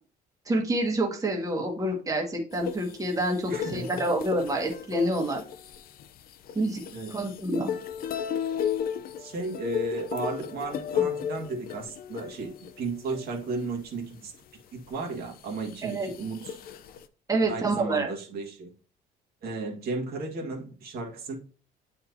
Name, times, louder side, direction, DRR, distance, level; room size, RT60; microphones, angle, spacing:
voice 1, 0.5-5.4 6.5-6.8 7.1-7.7 15.8-16.1 17.3-18.1, right 1 dB, 20° right, 0 dB, 1.6 m, -27 dB
sound 1, 2.5-13.8 14.3-14.4 14.9-17.1, left 8 dB, 60° left, 0.6 m, -35 dB
voice 2, 3.5-4.0 6.9-7.2 9.2-14.3 14.7-16.6 17.5-18.7 19.4-21.4, right 3 dB, 65° right, 0 dB, 1.8 m, -34 dB
8.6 x 4.4 x 2.8 m, 0.38 s
cardioid pair, 110°, 17 cm